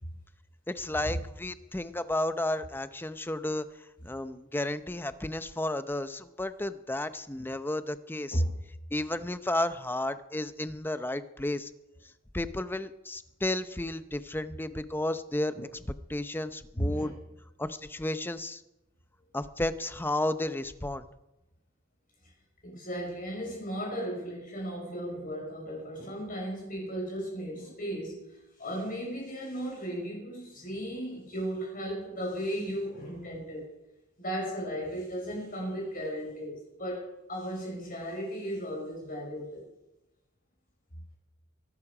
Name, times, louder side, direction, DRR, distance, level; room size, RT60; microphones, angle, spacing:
voice 1, 0.7-3.7 4.0-8.4 8.9-11.7 12.3-15.5 16.1-17.1 17.6-18.6 19.3-21.1, left 1 dB, 10° left, 12 dB, 0.7 m, -32 dB
voice 2, 16.8-17.1 22.6-33.7 34.2-39.6, equal, 45° left, -2 dB, 5.5 m, -35 dB
23.5 x 12.0 x 5.0 m, 0.94 s
head